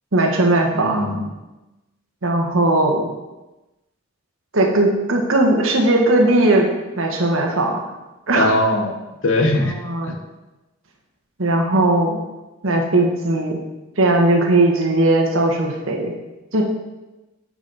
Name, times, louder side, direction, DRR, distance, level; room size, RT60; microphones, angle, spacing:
voice 1, 0.1-1.2 2.2-3.1 4.5-6.7 7.0-7.8 8.3-8.5 9.6-10.1 11.4-12.2 12.6-13.6 14.0-16.1 16.5-16.6, right 2 dB, 75° right, 1 dB, 1.4 m, -18 dB
voice 2, 0.7-1.3 8.3-8.9 9.2-9.7 10.0-10.1, left 1 dB, 70° left, 3 dB, 1.1 m, -20 dB
9.1 x 5.2 x 4.1 m, 1.1 s
head